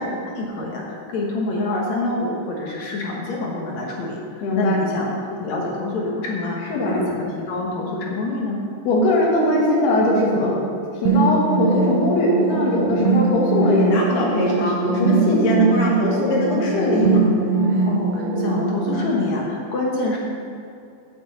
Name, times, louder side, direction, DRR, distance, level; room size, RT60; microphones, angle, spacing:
voice 1, 0.0-8.6 17.8-20.2, left 2 dB, 60° left, -2 dB, 2.1 m, -26 dB
voice 2, 4.4-4.9 6.7-7.0 8.9-10.5 11.0-17.3, left 1 dB, 90° left, -3 dB, 4.1 m, -20 dB
sound 1, 11.1-19.0, right 3 dB, 75° right, 2.4 m, -21 dB
9.6 x 7.0 x 7.8 m, 2.5 s
omnidirectional pair, 4.4 m